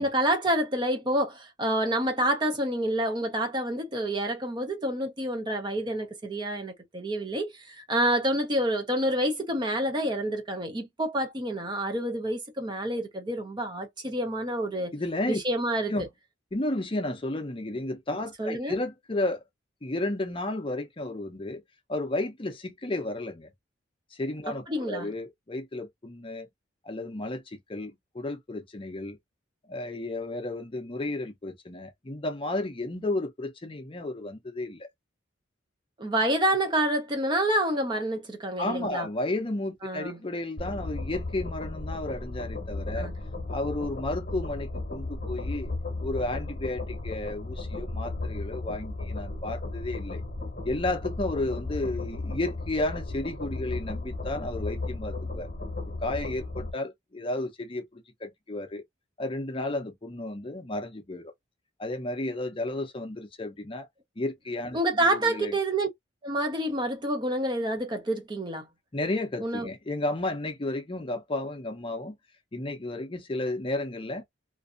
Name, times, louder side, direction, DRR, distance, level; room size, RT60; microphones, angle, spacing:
voice 1, 0.0-14.9 15.3-15.9 18.4-18.8 24.7-25.1 36.0-39.1 39.8-40.2 42.9-43.2 64.7-65.9 66.2-68.7 69.4-69.7, right 1 dB, 25° right, 0.5 m, -28 dB
voice 2, 14.9-15.4 15.9-16.1 16.5-19.4 19.8-21.6 21.9-23.5 24.1-26.5 26.8-29.2 29.7-34.9 38.6-43.1 43.5-45.7 46.0-50.2 50.6-55.5 56.0-58.8 59.2-61.3 61.8-63.9 64.2-64.8 65.0-65.5 68.9-72.1 72.5-74.2, left 2 dB, 25° left, 0.6 m, -32 dB
sound 1, 40.6-56.7, left 2 dB, 45° left, 0.9 m, -35 dB
2.6 x 2.5 x 2.4 m
head